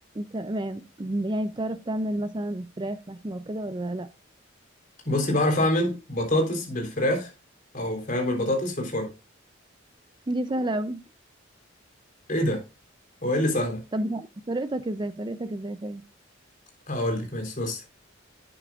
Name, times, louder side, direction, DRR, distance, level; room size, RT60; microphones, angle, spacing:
voice 1, 0.1-4.1 10.3-11.0 13.9-16.0, right 1 dB, 25° right, 0.5 m, -30 dB
voice 2, 5.1-7.3 7.7-9.1 12.3-12.6 13.2-13.8 16.9-17.8, left 1 dB, 40° left, 3.7 m, -25 dB
11.5 x 9.1 x 2.4 m
head